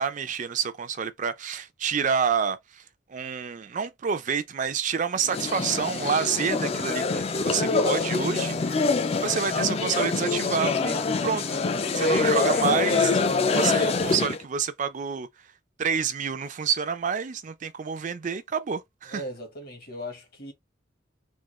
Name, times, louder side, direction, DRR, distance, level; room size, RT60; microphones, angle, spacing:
voice 1, 0.0-2.8 3.1-8.8 9.2-11.6 11.9-15.3 15.8-19.2, right 6 dB, 40° right, 0.4 m, -28 dB
sound 1, 5.2-14.4, left 4 dB, 30° left, 0.4 m, -25 dB
voice 2, 11.9-12.2 19.1-20.5, equal, 55° left, 1.5 m, -38 dB
3.7 x 2.4 x 3.1 m
head